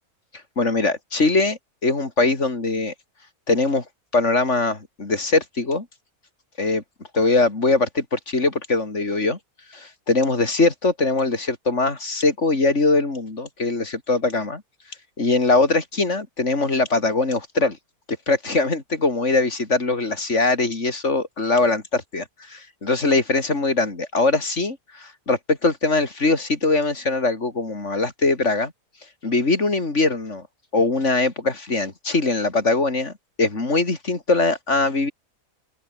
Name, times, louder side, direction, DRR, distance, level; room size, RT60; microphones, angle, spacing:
voice 1, 0.6-2.9 3.5-3.8 4.1-5.9 6.6-6.8 7.1-9.4 9.7-14.6 15.2-17.8 18.3-28.7 29.2-30.5 30.7-33.1 33.4-35.1, left 3 dB, 50° left, 3.9 m, -21 dB
open air
omnidirectional pair, 1.6 m